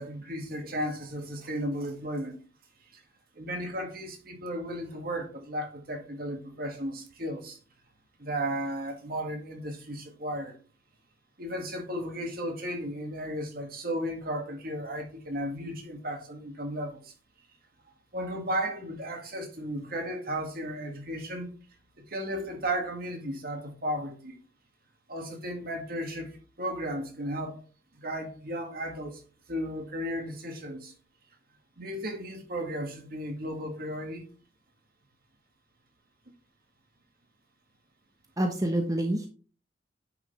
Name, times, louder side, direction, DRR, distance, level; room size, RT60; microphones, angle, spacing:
voice 1, 0.0-2.4 3.4-7.6 8.2-10.6 11.4-17.1 18.1-21.5 22.1-24.4 25.1-27.6 27.9-29.2 29.5-30.9 31.8-34.3, equal, 55° right, 2.1 m, -34 dB
voice 2, 38.4-39.3, right 1 dB, 20° right, 1.0 m, -27 dB
10.0 x 5.8 x 3.3 m
head